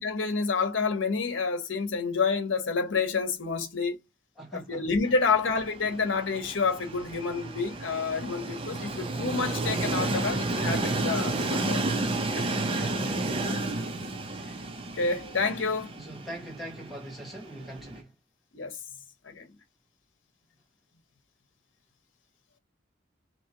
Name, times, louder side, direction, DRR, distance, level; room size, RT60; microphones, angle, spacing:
voice 1, 0.0-4.0 4.5-11.8 12.3-12.5 14.9-15.9 18.5-18.8 19.2-19.5, left 4 dB, 85° left, 0.9 m, -29 dB
voice 2, 4.4-4.9 12.7-13.7 15.9-18.1, right 1 dB, ahead, 1.6 m, -42 dB
Train, 5.0-18.0, right 2 dB, 30° right, 0.6 m, -32 dB
3.5 x 2.9 x 2.8 m
head